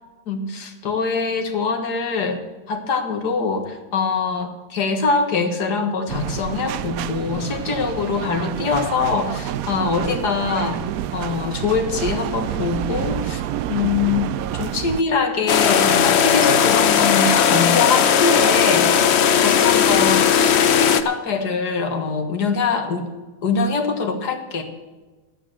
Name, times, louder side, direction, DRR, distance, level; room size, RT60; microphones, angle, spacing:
voice 1, 0.3-2.4 2.7-10.8 11.1-13.4 13.7-18.9 19.4-23.1 23.4-24.6, left 5 dB, 85° left, 5 dB, 2.1 m, -23 dB
sound 1, 6.1-15.0, right 12 dB, 70° right, 0.9 m, -28 dB
sound 2, 15.5-21.0, left 8 dB, 55° left, 0.8 m, -17 dB
11.5 x 9.1 x 7.6 m, 1.2 s
omnidirectional pair, 1.7 m